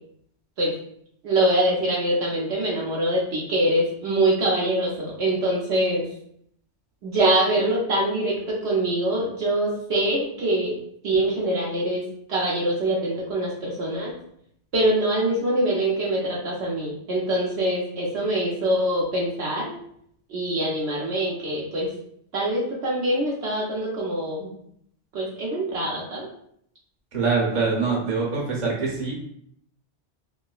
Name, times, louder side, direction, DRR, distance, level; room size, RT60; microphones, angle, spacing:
voice 1, 1.2-6.0 7.0-10.8 11.0-12.0 12.3-14.1 14.7-19.7 20.3-21.9 22.3-24.5 25.1-26.3, right 1 dB, 70° right, -4 dB, 1.0 m, -24 dB
voice 2, 27.1-29.1, right 4 dB, 40° right, -3 dB, 0.9 m, -24 dB
4.5 x 2.0 x 2.3 m, 0.69 s
omnidirectional pair, 1.2 m